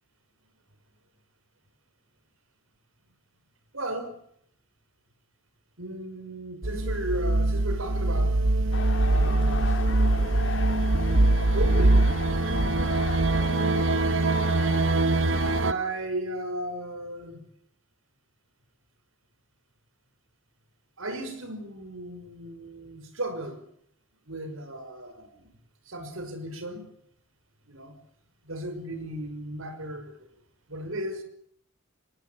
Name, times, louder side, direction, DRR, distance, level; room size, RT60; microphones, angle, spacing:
voice 1, 3.7-4.2 5.8-8.4 9.0-10.7 11.5-12.2 12.5-13.6 15.6-17.5 21.0-23.6 24.3-25.5 25.9-26.8 27.7-27.9 28.4-30.3 30.7-31.2, right 1 dB, 90° right, 5.8 m, -35 dB
sound 1, 6.6-15.7, right 2 dB, 70° right, 1.1 m, -23 dB
sound 2, 8.7-15.6, left 4 dB, 65° left, 1.9 m, -36 dB
24.5 x 18.5 x 8.9 m
head